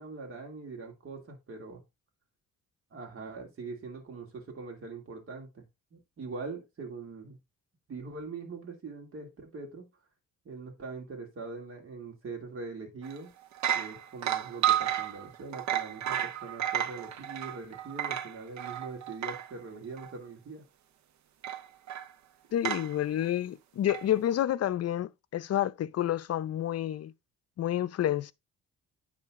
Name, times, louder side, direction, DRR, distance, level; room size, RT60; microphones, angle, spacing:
voice 1, 0.0-1.8 2.9-5.6 5.9-7.4 7.9-9.9 10.4-13.3 13.7-20.7, right 4 dB, 45° right, 2.6 m, -42 dB
sound 1, 13.0-13.2 13.5-19.5 20.0-20.1 21.4-22.1 22.6-22.9 23.9-24.0, right 10 dB, 65° right, 0.9 m, -32 dB
voice 2, 22.5-27.1 27.6-28.3, left 11 dB, 55° left, 0.6 m, -29 dB
9.9 x 3.9 x 3.7 m
cardioid pair, 90°, 30 cm